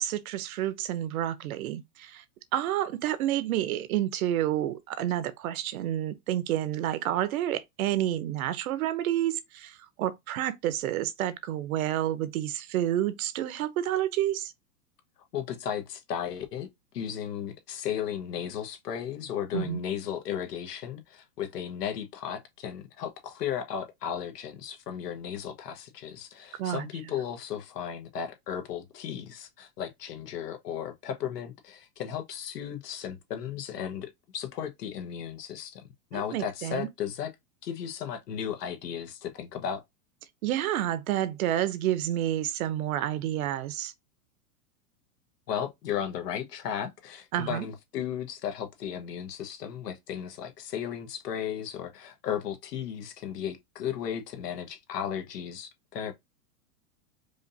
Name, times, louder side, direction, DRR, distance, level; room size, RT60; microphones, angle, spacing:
voice 1, 0.0-2.2 2.5-14.5 19.5-19.8 26.6-26.9 36.1-36.9 40.4-43.9 47.3-47.7, right 12 dB, 65° right, 0.9 m, -29 dB
voice 2, 15.3-16.7 16.9-37.3 37.6-39.8 45.5-56.1, left 9 dB, 85° left, 1.3 m, -35 dB
5.0 x 2.6 x 2.6 m
hypercardioid pair, 140°, 47 cm